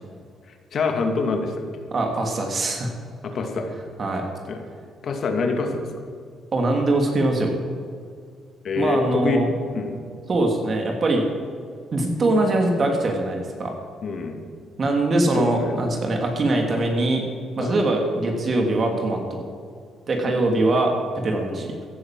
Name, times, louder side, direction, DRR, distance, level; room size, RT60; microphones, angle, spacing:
voice 1, 0.7-1.8 3.2-3.7 4.5-4.6 5.0-5.9 8.6-9.4 9.7-10.0 14.0-14.4 15.3-15.7 17.6-17.7 20.2-20.4 21.5-21.6, left 4 dB, 60° left, 4 dB, 2.4 m, -26 dB
voice 2, 1.9-2.9 4.0-4.2 6.5-7.5 8.8-9.5 10.3-11.2 11.9-13.7 14.8-17.2 17.6-19.4 20.1-21.0 21.2-21.7, right 2 dB, 45° right, 2 dB, 2.9 m, -22 dB
15.5 x 11.0 x 7.7 m, 2.2 s
cardioid pair, 90°, 0 cm